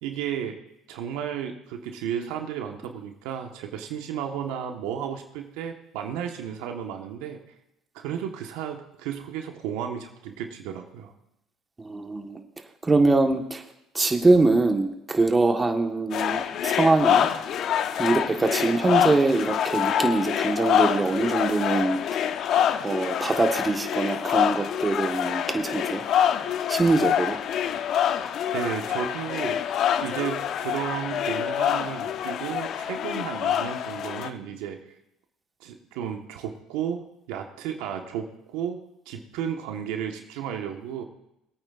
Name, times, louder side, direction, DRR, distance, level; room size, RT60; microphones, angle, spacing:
voice 1, 0.0-0.6 0.9-7.4 7.9-11.1 28.5-29.6 30.0-34.8 35.6-37.0 37.3-38.8 39.0-41.0, right 8 dB, 80° right, 3 dB, 1.4 m, -33 dB
voice 2, 11.8-12.4 12.8-13.6 13.9-17.3 18.0-22.0 22.8-26.0 26.7-27.4, right 3 dB, 20° right, 4 dB, 1.5 m, -23 dB
sound 1, 16.1-34.3, left 9 dB, 60° left, 0.8 m, -26 dB
23.0 x 8.9 x 2.6 m, 0.82 s
supercardioid pair, 75°, 0 cm